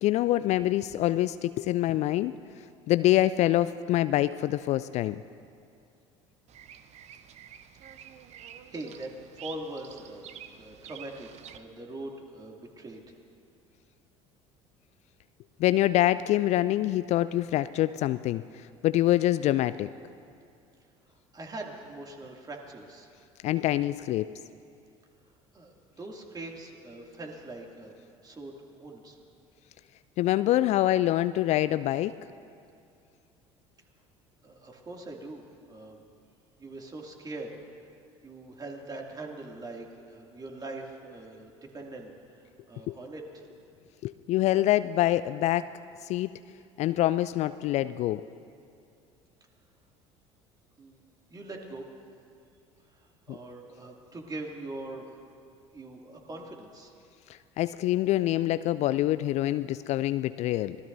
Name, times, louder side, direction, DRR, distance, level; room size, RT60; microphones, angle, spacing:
voice 1, 0.0-2.3 2.9-5.2 15.6-18.4 18.8-19.9 23.4-24.3 30.2-32.1 42.9-43.0 44.0-45.7 46.0-46.3 46.8-48.2 53.3-53.4 57.6-60.8, left 14 dB, 45° left, 14 dB, 0.4 m, -25 dB
Bird vocalization bird call bird song, 6.5-11.6, right 9 dB, 45° right, 0.8 m, -48 dB
voice 2, 8.7-10.3 10.5-13.0 21.3-23.1 25.5-27.9 28.2-29.2 34.4-36.0 36.6-37.5 38.2-43.5 50.8-51.0 51.3-51.8 52.9-55.2 55.7-56.9, right 2 dB, 25° right, 0 dB, 2.5 m, -42 dB
25.5 x 18.0 x 2.7 m, 2.5 s
figure-of-eight pair, 65°, 16 cm